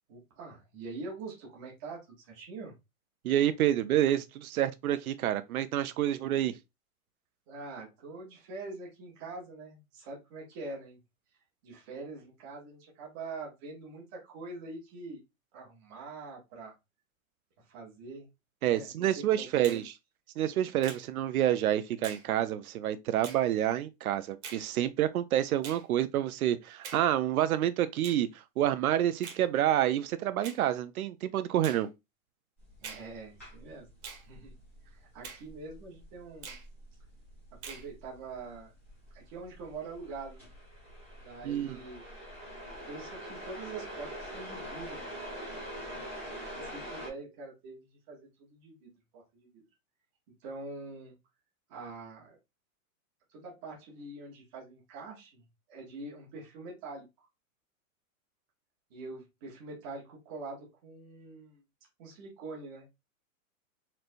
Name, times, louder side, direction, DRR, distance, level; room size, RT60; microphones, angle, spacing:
voice 1, 0.1-2.7 7.5-11.0 11.6-15.2 15.5-16.7 17.6-18.3 18.7-19.8 32.8-33.9 34.2-34.6 34.9-36.6 37.6-38.7 39.1-40.5 41.2-42.0 42.9-45.1 45.6-45.8 46.2-49.6 50.4-51.2 51.7-52.4 53.3-57.1 58.9-61.6 62.0-62.9, right 3 dB, 15° right, 0.8 m, -44 dB
voice 2, 3.2-6.5 18.6-19.8 20.4-28.3 28.6-31.9 41.4-41.8, right 12 dB, 75° right, 0.6 m, -28 dB
Finger snapping, 19.6-19.9 20.8-21.0 22.0-22.3 23.2-23.4 24.4-24.6 25.6-25.8 26.8-27.1 28.0-28.2 29.2-29.4 30.4-30.6 31.6-31.8 32.8-33.1 34.0-34.2 35.2-35.4 36.4-36.7 37.6-37.9, right 6 dB, 50° right, 1.2 m, -44 dB
sound 1, 32.6-47.1, equal, 10° left, 0.4 m, -45 dB
4.3 x 3.2 x 2.5 m
supercardioid pair, 180°, 43 cm